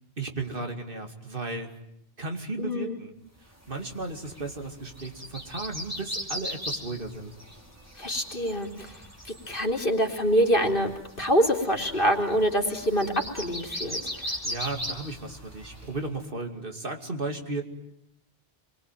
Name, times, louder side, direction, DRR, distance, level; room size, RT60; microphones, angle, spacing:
voice 1, 0.2-1.7 2.2-3.1 3.7-7.3 14.2-17.6, right 3 dB, 60° right, 4 dB, 2.8 m, -35 dB
voice 2, 2.6-3.0 8.0-9.0 9.2-10.9 11.2-14.3, equal, 55° left, 2 dB, 3.4 m, -25 dB
sound 1, 3.6-16.0, equal, 15° right, 4.8 m, -39 dB
28.5 x 22.5 x 9.2 m, 0.79 s
omnidirectional pair, 1.1 m